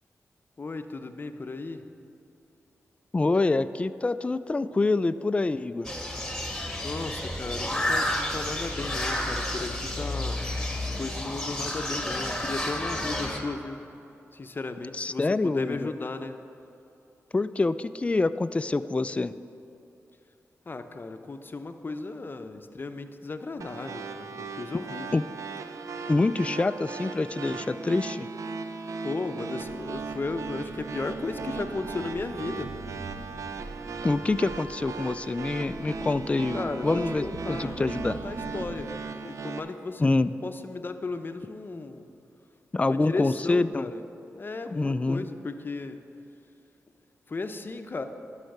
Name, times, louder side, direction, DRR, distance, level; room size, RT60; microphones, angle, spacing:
voice 1, 0.6-1.8 6.8-13.8 14.3-16.4 20.7-25.2 29.0-32.7 36.5-38.9 39.2-40.1 40.4-42.1 42.8-44.0 44.3-46.0 47.3-48.1, left 3 dB, 40° left, 8 dB, 0.7 m, -35 dB
voice 2, 3.1-5.9 14.9-15.9 17.3-19.3 25.1-25.2 26.1-28.3 34.0-38.2 40.0-40.3 42.7-43.9 44.7-45.3, left 3 dB, 25° left, 13 dB, 0.3 m, -26 dB
sound 1, 5.8-13.4, left 1 dB, 10° left, 1.7 m, -31 dB
sound 2, 23.6-39.6, right 4 dB, 75° right, 0.5 m, -37 dB
sound 3, 29.6-38.8, right 2 dB, 45° right, 0.9 m, -43 dB
11.5 x 5.7 x 6.6 m, 2.8 s
cardioid pair, 55°, 5 cm